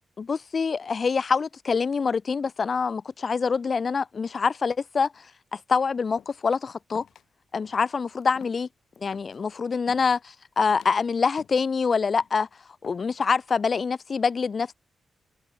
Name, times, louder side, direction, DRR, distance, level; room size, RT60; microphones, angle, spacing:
voice 1, 0.2-5.3 5.5-7.1 7.5-8.7 9.0-12.5 12.8-14.7, left 5 dB, 45° left, 0.7 m, -25 dB
sound 1, 6.2-6.5 6.9-7.3 7.6-7.9 8.2-9.4 9.8-10.2 10.6-11.0 11.4-11.7 12.0-12.4 12.8-13.3 13.7-14.1, left 9 dB, 85° left, 1.9 m, -51 dB
cardioid pair, 95°, 0 cm